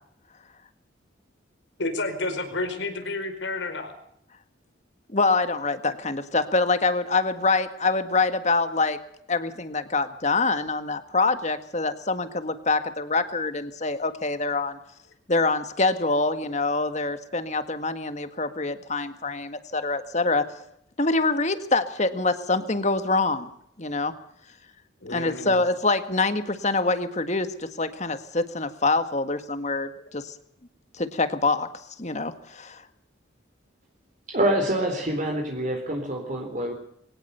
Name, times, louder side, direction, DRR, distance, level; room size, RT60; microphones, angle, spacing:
voice 1, 1.8-3.9 25.0-25.6 29.9-30.0, left 2 dB, 75° left, 7 dB, 5.0 m, -30 dB
voice 2, 5.1-9.0 9.3-14.8 15.3-20.5 21.0-23.5 23.8-24.1 25.1-30.3 31.0-31.7 32.0-32.8, left 3 dB, 35° left, 10 dB, 1.8 m, -25 dB
voice 3, 34.3-36.7, right 1 dB, 40° right, 3 dB, 3.9 m, -26 dB
23.0 x 18.0 x 6.9 m, 0.72 s
head